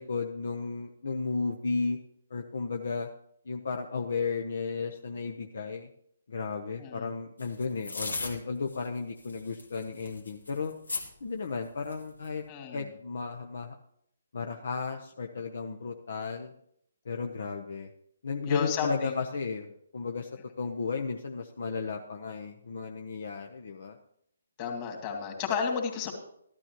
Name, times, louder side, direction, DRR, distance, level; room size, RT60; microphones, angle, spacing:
voice 1, 0.0-2.0 2.3-3.1 3.5-5.9 6.3-10.7 11.2-12.4 12.7-13.8 14.3-16.5 17.0-17.9 18.2-20.3 20.6-24.0, left 4 dB, 60° left, 4 dB, 0.8 m, -34 dB
sound 1, 7.4-8.3 8.7-8.9 9.2-11.0 11.8-12.3, left 3 dB, 80° left, 2.3 m, -37 dB
voice 2, 12.5-12.9 18.5-19.2 24.6-26.1, left 6 dB, 30° left, 1 dB, 2.3 m, -32 dB
13.5 x 12.5 x 3.0 m, 0.71 s
figure-of-eight pair, 135°, 0 cm